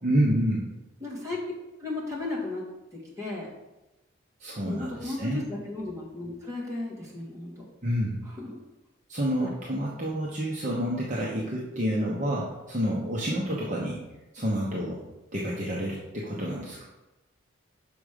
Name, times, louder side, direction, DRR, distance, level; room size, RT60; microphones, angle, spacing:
voice 1, 0.0-0.7 4.4-5.4 7.8-8.2 9.1-14.0 14.3-15.0 15.3-16.8, equal, 35° right, -4 dB, 0.9 m, -28 dB
voice 2, 1.0-1.4 1.8-2.6 2.9-3.5 4.6-7.7 8.2-8.6 9.4-9.5, left 2 dB, 15° right, -4 dB, 1.7 m, -35 dB
6.2 x 5.2 x 5.0 m, 1.0 s
head